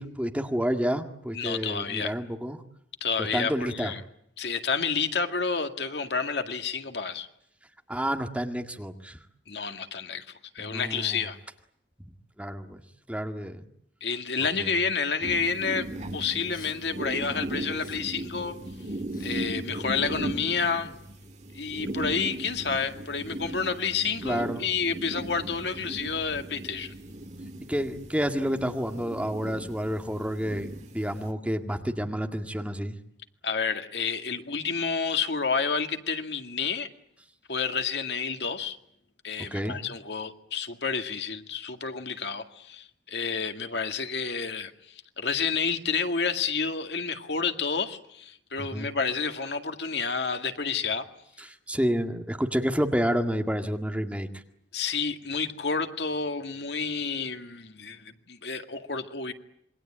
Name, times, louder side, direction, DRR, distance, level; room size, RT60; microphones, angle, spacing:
voice 1, 0.0-2.6 3.2-3.9 7.9-9.2 10.6-11.3 12.4-12.8 13.1-13.6 14.6-14.8 19.7-19.8 24.2-24.6 27.7-33.0 39.5-39.8 48.6-48.9 51.7-54.3, equal, 10° right, 2.0 m, -29 dB
voice 2, 1.3-2.1 3.0-4.0 4.4-7.3 9.5-11.4 14.0-18.6 19.2-20.9 21.5-26.9 33.4-36.9 37.5-38.8 39.2-51.0 54.7-59.3, left 5 dB, 70° left, 2.1 m, -30 dB
sound 1, 15.2-31.3, right 1 dB, 40° right, 2.0 m, -38 dB
Respiratory sounds, 16.5-16.8 17.1-17.4 17.7-18.0 18.4-19.5 19.8-21.2, left 2 dB, 50° left, 5.5 m, -49 dB
27.5 x 23.0 x 8.8 m
head